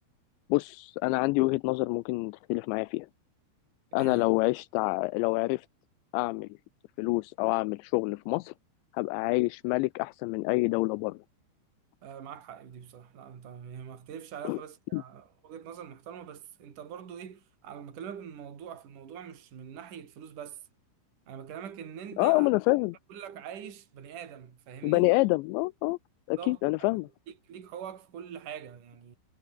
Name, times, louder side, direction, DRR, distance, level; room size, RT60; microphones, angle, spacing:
voice 1, 0.5-3.1 3.9-5.7 6.1-6.5 7.0-8.5 8.9-11.2 14.4-14.6 14.9-15.0 22.2-23.0 24.8-26.0 26.3-27.1, left 23 dB, 85° left, 2.9 m, -27 dB
voice 2, 3.9-4.3 12.0-20.6 21.3-22.5 23.1-25.1 26.3-26.9 27.3-29.2, right 8 dB, 50° right, 4.5 m, -43 dB
omnidirectional pair, 5.1 m